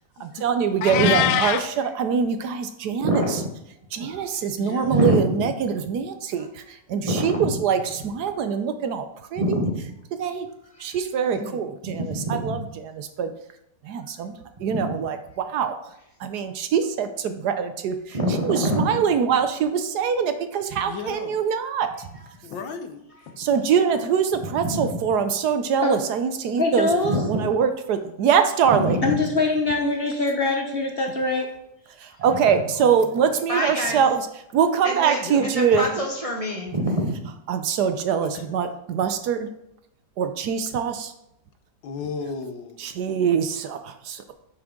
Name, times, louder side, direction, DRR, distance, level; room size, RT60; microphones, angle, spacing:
voice 1, 0.2-3.2 3.9-9.0 9.3-9.6 10.2-10.5 10.8-12.6 12.9-13.3 13.8-14.3 14.6-15.2 15.5-15.7 16.2-18.0 18.4-21.9 23.4-26.9 27.3-29.0 32.0-34.2 34.5-35.8 37.5-39.5 40.2-41.1 42.8-44.3, right 7 dB, 70° right, 9 dB, 1.1 m, -23 dB
Meow, 0.8-1.7, left 11 dB, 75° left, 1.0 m, -22 dB
voice 2, 0.9-1.3 3.0-3.5 4.0-4.4 4.8-5.4 7.0-7.6 9.4-9.9 10.7-11.0 11.9-12.6 14.7-15.0 18.1-19.0 21.9-22.3 24.4-25.0 27.0-27.5 28.7-29.3 32.1-32.5 33.5-34.0 34.8-37.3, equal, 30° right, 0 dB, 0.7 m, -26 dB
voice 3, 4.5-5.0 11.3-11.6 18.6-19.0 20.8-21.4 22.4-23.4 29.1-29.2 32.7-33.2 33.9-34.0 35.2-35.4 38.2-38.7 41.8-42.8, left 5 dB, 90° left, 7 dB, 1.6 m, -36 dB
voice 4, 26.6-27.1 29.0-31.5, left 3 dB, 45° left, 3 dB, 0.8 m, -23 dB
8.5 x 6.1 x 3.7 m, 0.80 s
omnidirectional pair, 2.0 m